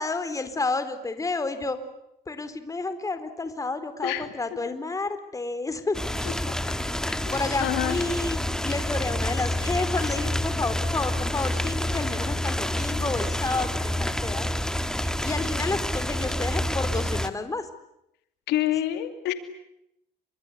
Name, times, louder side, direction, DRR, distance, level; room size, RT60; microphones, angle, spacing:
voice 1, 0.0-1.8 2.3-6.4 7.3-14.5 14.9-17.7, left 3 dB, 20° left, 11 dB, 4.1 m, -30 dB
sound 1, 5.9-17.3, left 1 dB, 5° left, 2.0 m, -28 dB
voice 2, 7.1-7.4 7.6-8.0 18.5-19.3, left 13 dB, 85° left, 9 dB, 2.6 m, -27 dB
28.0 x 25.5 x 8.2 m, 0.79 s
cardioid pair, 110°, 17 cm